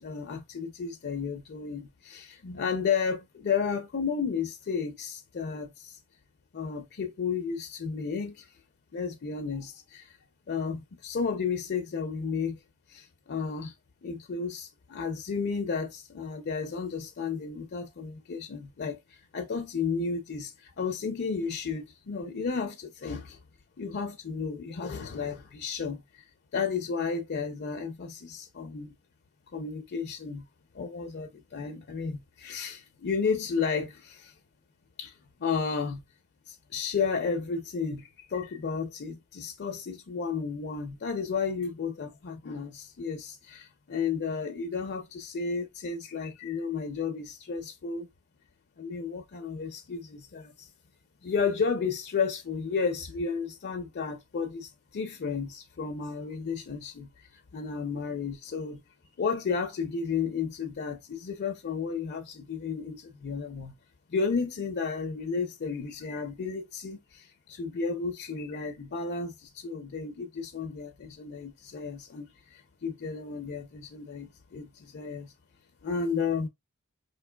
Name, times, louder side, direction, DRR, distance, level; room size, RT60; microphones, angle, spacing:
voice 1, 0.0-3.2 3.4-5.7 6.5-8.3 8.9-9.7 10.5-12.5 13.3-13.7 14.0-19.0 19.3-20.5 20.8-23.2 23.8-26.0 26.5-28.9 29.5-30.4 30.8-33.9 35.0-35.1 35.4-36.0 36.7-38.0 38.3-43.6 43.9-48.1 48.8-50.0 50.3-50.4 51.2-54.7 54.9-57.1 57.5-58.8 59.2-63.0 63.2-63.7 64.1-67.0 67.5-69.3 69.6-70.9 71.2-72.2 72.8-74.3 74.5-74.7 74.9-75.3 75.8-76.5, left 5 dB, 50° left, 0.5 m, -32 dB
4.4 x 2.7 x 2.2 m
head